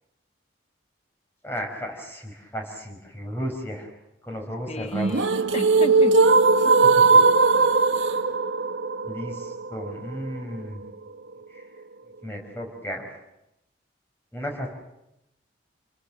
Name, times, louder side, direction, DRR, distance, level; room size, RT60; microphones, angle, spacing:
voice 1, 1.4-3.9 4.2-5.2 6.6-7.2 9.0-10.8 11.5-11.7 12.2-13.1 14.3-14.7, equal, 10° left, 5.4 m, -34 dB
voice 2, 4.7-6.3 7.0-7.7, left 1 dB, 35° left, 0.9 m, -35 dB
sound 1, 4.9-10.9, right 3 dB, 75° right, 1.4 m, -19 dB
29.0 x 21.5 x 7.6 m
head